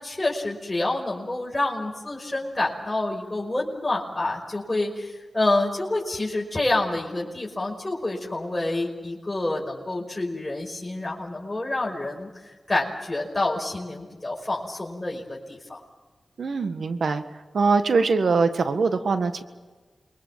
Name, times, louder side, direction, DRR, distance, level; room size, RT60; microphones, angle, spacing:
voice 1, 0.0-12.3 12.7-15.8, left 2 dB, 30° left, -3 dB, 5.5 m, -28 dB
voice 2, 16.4-17.2 17.5-19.4, right 4 dB, 80° right, 10 dB, 1.5 m, -22 dB
28.0 x 22.5 x 7.5 m, 1.3 s
cardioid pair, 40°, 0 cm